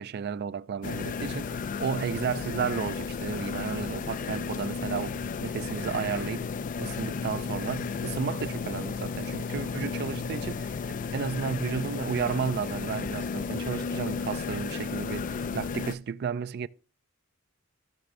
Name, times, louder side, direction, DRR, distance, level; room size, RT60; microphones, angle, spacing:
voice 1, 0.0-6.5 6.8-10.7 11.1-16.7, right 6 dB, 50° right, 0.4 m, -33 dB
sound 1, 0.8-15.9, left 5 dB, 40° left, 0.3 m, -33 dB
14.5 x 6.6 x 2.5 m
head